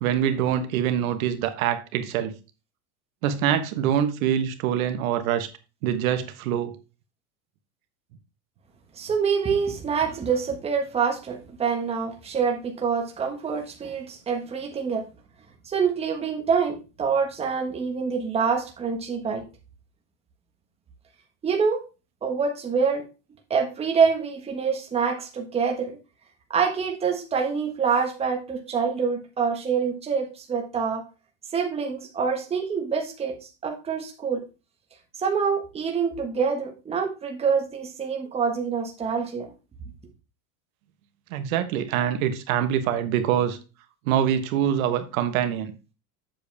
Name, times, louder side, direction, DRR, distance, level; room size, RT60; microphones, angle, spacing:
voice 1, 0.0-2.3 3.2-5.5 5.8-6.8 41.3-43.6 44.1-45.7, right 9 dB, 80° right, 1.3 m, -24 dB
voice 2, 9.0-15.0 15.6-19.4 21.4-21.8 22.2-23.0 23.5-26.0 26.5-31.0 31.5-34.4 35.2-39.5, right 6 dB, 15° right, 1.4 m, -26 dB
7.8 x 6.9 x 3.4 m
cardioid pair, 170°, 40 cm